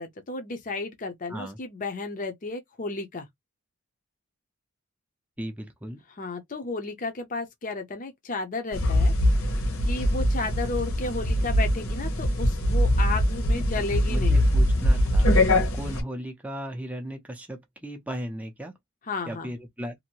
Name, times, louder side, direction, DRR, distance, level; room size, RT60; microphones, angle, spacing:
voice 1, 0.0-3.3 6.2-9.1 9.8-14.4 19.1-19.5, left 3 dB, 35° left, 0.6 m, -33 dB
voice 2, 5.4-6.0 13.0-13.1 13.5-18.7 19.3-19.9, equal, 5° right, 0.5 m, -37 dB
sound 1, 8.7-16.0, left 1 dB, 65° left, 1.0 m, -22 dB
2.7 x 2.5 x 2.9 m
head